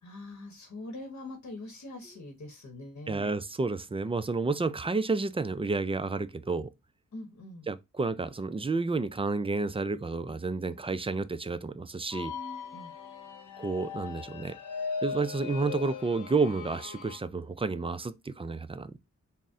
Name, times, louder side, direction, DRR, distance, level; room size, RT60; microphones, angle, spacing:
voice 1, 0.0-3.3 7.1-7.7 12.7-12.9, left 2 dB, 55° left, 0.9 m, -43 dB
voice 2, 3.1-6.7 7.7-12.3 13.6-14.6 15.0-19.0, right 3 dB, 20° right, 0.3 m, -30 dB
sound 1, 12.1-17.2, left 5 dB, 80° left, 0.9 m, -39 dB
4.0 x 2.1 x 3.5 m
cardioid pair, 60°, 31 cm